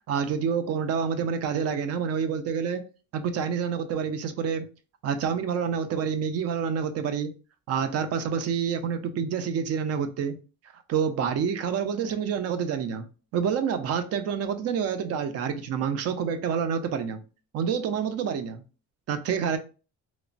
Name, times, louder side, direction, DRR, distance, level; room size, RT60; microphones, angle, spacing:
voice 1, 0.1-2.8 3.1-4.7 5.0-7.3 7.7-10.3 10.9-13.1 13.3-17.2 17.5-18.6 19.1-19.6, right 7 dB, 55° right, 0.5 m, -28 dB
3.0 x 2.1 x 2.5 m
cardioid pair, 130°, 30 cm